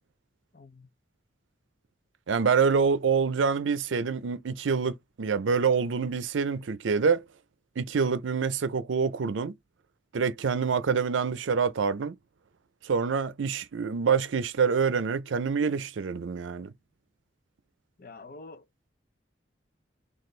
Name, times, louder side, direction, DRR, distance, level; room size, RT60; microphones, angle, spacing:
voice 1, 0.5-0.9 18.0-18.9, left 3 dB, 50° left, 0.5 m, -47 dB
voice 2, 2.3-7.2 7.8-9.5 10.1-12.2 12.8-16.7, right 5 dB, 85° right, 0.5 m, -26 dB
4.2 x 2.4 x 3.2 m
head